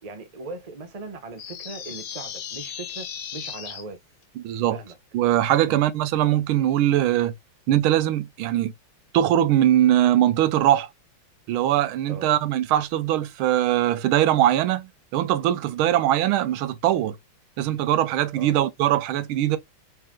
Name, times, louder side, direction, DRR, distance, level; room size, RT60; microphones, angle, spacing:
voice 1, 0.0-3.1 3.3-4.0 4.7-5.0 5.7-5.8 12.1-12.3 18.4-18.6, right 3 dB, 70° right, 0.3 m, -39 dB
sound 1, 1.4-3.8, left 8 dB, 65° left, 1.6 m, -36 dB
voice 2, 4.4-4.8 5.1-7.3 7.7-8.7 9.1-10.9 11.5-17.2 17.6-19.6, right 12 dB, 85° right, 1.5 m, -21 dB
4.2 x 3.1 x 3.7 m
omnidirectional pair, 2.2 m